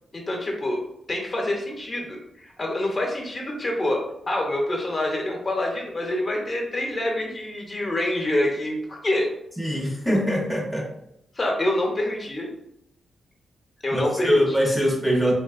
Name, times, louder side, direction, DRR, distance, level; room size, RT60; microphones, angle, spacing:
voice 1, 0.1-0.8 1.1-9.3 11.3-12.5 13.8-14.4, left 1 dB, 30° left, 0 dB, 0.7 m, -26 dB
voice 2, 9.6-10.9 13.9-15.3, equal, 5° right, -1 dB, 0.6 m, -22 dB
3.2 x 2.5 x 2.4 m, 0.77 s
cardioid pair, 105°, 0 cm